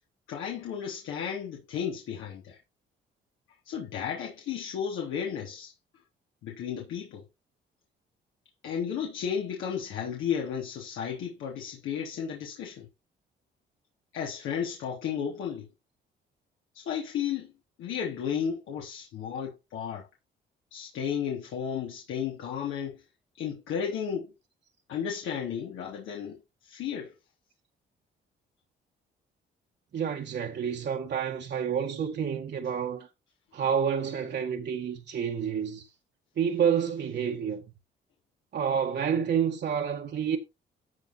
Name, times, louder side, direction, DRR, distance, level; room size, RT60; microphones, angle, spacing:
voice 1, 0.3-2.6 3.7-5.7 6.4-7.2 8.6-12.9 14.1-15.7 16.7-17.5 17.8-20.1 20.7-23.0 23.4-24.3 24.9-27.1, left 8 dB, 85° left, 3.4 m, -33 dB
voice 2, 29.9-33.1 33.5-35.9 36.4-37.8 38.5-40.4, right 7 dB, 60° right, 1.9 m, -29 dB
13.5 x 4.7 x 4.5 m
cardioid pair, 90°, 20 cm